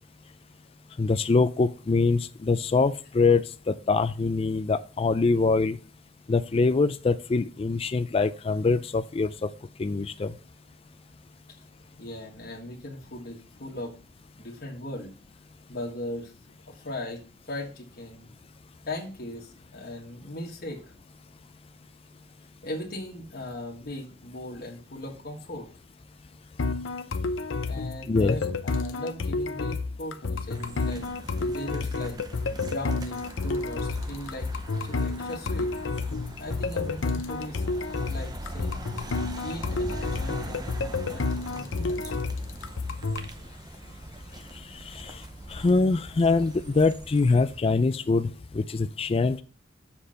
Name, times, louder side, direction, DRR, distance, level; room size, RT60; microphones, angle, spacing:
voice 1, 1.0-5.8 6.3-9.5 9.8-10.3 28.1-28.4 44.9-45.2 45.5-49.4, left 3 dB, 30° left, 10 dB, 0.4 m, -24 dB
voice 2, 12.0-13.9 14.4-15.1 15.7-16.3 16.7-18.3 18.9-20.8 22.6-25.7 27.7-32.2 32.6-34.5 34.8-35.7 36.4-37.6 38.1-38.8 39.4-40.7 41.1-42.1, left 1 dB, 55° left, -2 dB, 1.7 m, -38 dB
sound 1, 26.6-43.3, left 3 dB, 90° left, 0.7 m, -30 dB
sound 2, 30.5-47.6, right 1 dB, 20° right, 0.7 m, -41 dB
7.3 x 4.4 x 6.4 m, 0.37 s
head